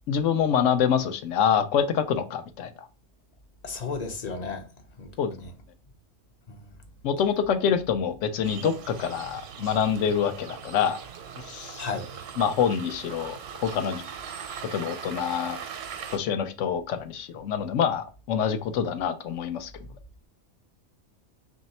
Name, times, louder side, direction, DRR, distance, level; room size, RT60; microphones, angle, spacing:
voice 1, 0.1-2.7 5.2-5.3 7.0-11.0 11.4-11.8 12.4-14.0 14.7-15.6 16.1-19.7, left 7 dB, 80° left, 0.9 m, -26 dB
voice 2, 3.6-4.6 5.0-5.1 6.5-6.6 11.8-12.0, left 4 dB, 45° left, 0.6 m, -32 dB
sound 1, 8.4-16.2, right 7 dB, 85° right, 1.0 m, -40 dB
3.2 x 2.7 x 4.1 m
omnidirectional pair, 1.2 m